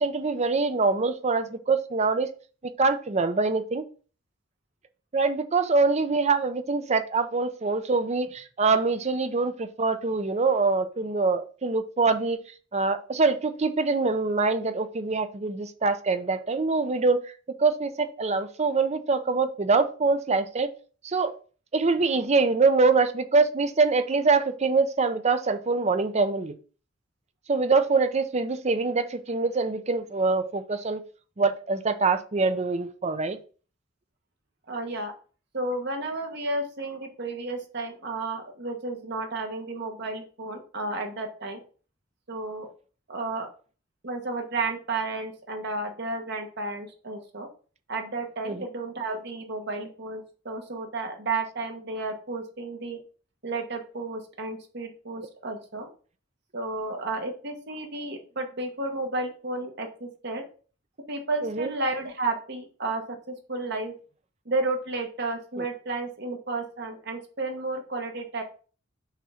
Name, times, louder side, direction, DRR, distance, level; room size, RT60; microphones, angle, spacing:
voice 1, 0.0-2.3 2.8-3.8 5.1-12.4 12.7-17.3 17.6-20.7 21.0-21.3 21.7-26.6 27.5-31.0 31.4-33.4 48.4-48.6 61.4-61.7 65.6-65.7, right 4 dB, 35° right, 0.6 m, -24 dB
voice 2, 34.7-35.1 35.5-41.6 42.3-42.7 43.1-43.5 44.0-47.5 47.9-53.0 53.4-55.9 56.5-60.4 61.1-63.0 63.3-63.9 64.4-68.4, right 2 dB, 60° right, 1.4 m, -32 dB
5.7 x 3.7 x 5.7 m
head